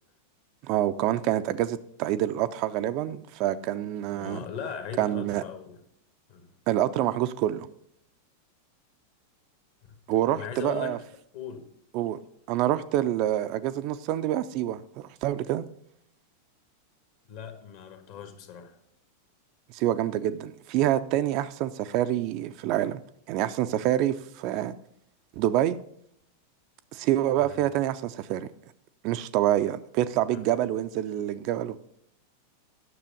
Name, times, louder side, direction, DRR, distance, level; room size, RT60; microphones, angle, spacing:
voice 1, 0.6-4.4 5.0-5.4 6.7-7.7 10.1-11.0 11.9-12.2 12.5-15.7 19.7-23.0 23.3-24.7 25.4-25.8 26.9-28.5 29.0-31.8, right 13 dB, 40° right, 0.4 m, -27 dB
voice 2, 4.2-5.8 6.3-6.5 10.3-11.0 11.3-11.6 17.3-18.8 27.4-27.6 30.3-30.4, left 7 dB, 50° left, 1.4 m, -39 dB
9.7 x 6.8 x 5.2 m
figure-of-eight pair, 90°, 0 cm